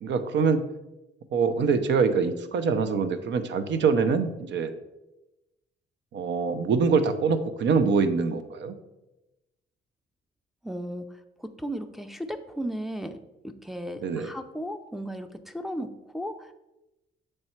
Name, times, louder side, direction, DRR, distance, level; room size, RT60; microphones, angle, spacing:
voice 1, 0.0-0.6 1.3-4.7 6.1-8.7 14.0-14.3, right 5 dB, 65° right, 11 dB, 0.6 m, -24 dB
voice 2, 10.6-11.0 11.4-13.2 13.4-16.5, equal, ahead, 6 dB, 0.4 m, -35 dB
6.7 x 3.3 x 4.4 m, 0.97 s
cardioid pair, 90°, 20 cm